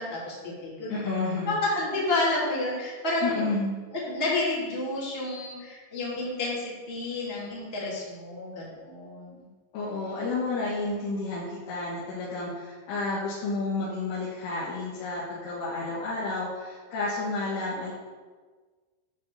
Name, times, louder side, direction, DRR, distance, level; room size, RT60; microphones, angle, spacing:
voice 1, 0.0-3.4 3.9-9.5, left 2 dB, 15° left, -7 dB, 2.2 m, -30 dB
voice 2, 0.9-1.6 3.2-3.8 9.7-17.9, left 3 dB, 60° left, -8 dB, 3.5 m, -31 dB
11.5 x 5.1 x 7.0 m, 1.4 s
omnidirectional pair, 5.9 m